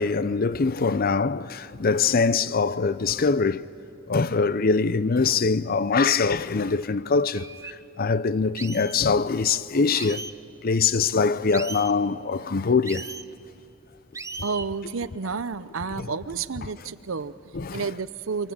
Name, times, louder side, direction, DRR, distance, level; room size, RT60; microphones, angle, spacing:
voice 1, 0.0-3.6 4.1-7.5 8.0-10.2 10.6-13.1 16.0-16.1 17.5-17.8, left 4 dB, 45° left, 0.6 m, -23 dB
sound 1, 6.8-6.9 7.3-7.7 8.6-9.0 10.0-10.3 11.5-11.9 12.8-13.3 14.1-14.7, right 4 dB, 15° right, 0.6 m, -37 dB
voice 2, 14.4-17.3 17.7-18.5, right 5 dB, 75° right, 0.7 m, -30 dB
28.0 x 24.0 x 8.7 m
head